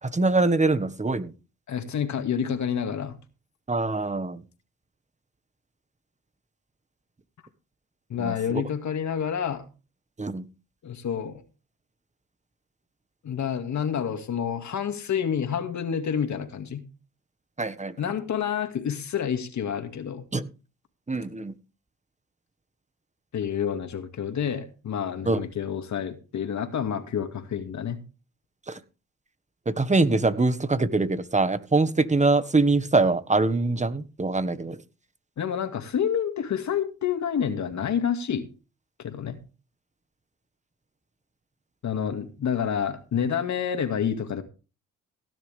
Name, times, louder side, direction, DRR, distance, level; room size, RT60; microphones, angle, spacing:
voice 1, 0.0-1.3 3.7-4.4 8.2-8.6 10.2-10.4 17.6-17.9 20.3-20.5 21.1-21.5 25.3-25.4 28.7-28.8 29.6-34.8, right 3 dB, 20° right, 1.6 m, -24 dB
voice 2, 1.7-3.2 8.1-9.6 10.8-11.4 13.2-16.8 18.0-20.3 23.3-28.0 35.4-38.5 39.0-39.4 41.8-44.4, left 8 dB, 60° left, 2.3 m, -28 dB
17.0 x 10.5 x 3.5 m
supercardioid pair, 65°, 31 cm